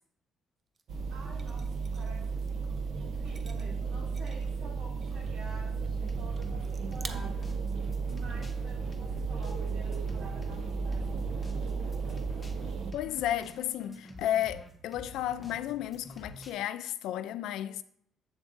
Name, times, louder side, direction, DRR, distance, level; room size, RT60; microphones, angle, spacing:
sound 1, 0.7-0.8 1.4-2.6 3.2-4.6 5.0-5.2 5.5-6.0 6.3-6.4 6.6-7.1, right 4 dB, 25° right, 0.5 m, -48 dB
sound 2, 0.9-12.9, right 5 dB, 55° right, 0.7 m, -34 dB
voice 1, 1.1-7.6 8.1-12.1, right 2 dB, 75° right, 3.2 m, -50 dB
sound 3, 6.0-16.5, left 1 dB, 15° left, 0.9 m, -47 dB
voice 2, 12.9-17.8, left 12 dB, 90° left, 0.3 m, -33 dB
7.8 x 7.2 x 2.6 m
cardioid pair, 165°, 0 cm